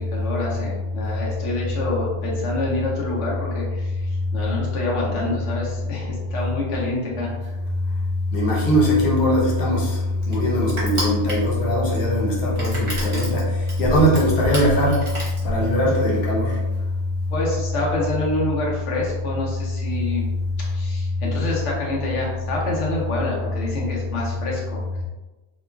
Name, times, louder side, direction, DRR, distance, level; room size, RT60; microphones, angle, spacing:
voice 1, 0.0-7.6 17.3-20.2 20.6-25.0, left 2 dB, 85° left, -4 dB, 1.1 m, -27 dB
voice 2, 8.3-10.0 10.3-13.4 13.8-15.0 15.4-16.5, equal, 65° left, -4 dB, 1.0 m, -20 dB
Crushing, 9.2-16.0, equal, 30° right, 0.8 m, -32 dB
2.9 x 2.3 x 2.2 m, 1.1 s
omnidirectional pair, 1.2 m